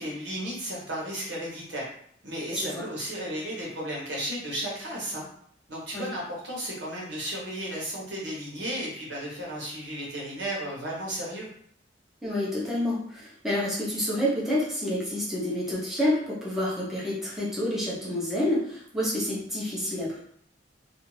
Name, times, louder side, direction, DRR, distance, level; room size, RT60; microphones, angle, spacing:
voice 1, 0.0-1.9 2.2-5.3 5.7-11.5, equal, 70° right, -4 dB, 1.0 m, -34 dB
voice 2, 2.5-2.9 5.9-6.1 12.2-20.2, left 1 dB, ahead, -7 dB, 0.6 m, -28 dB
2.4 x 2.4 x 3.1 m, 0.64 s
head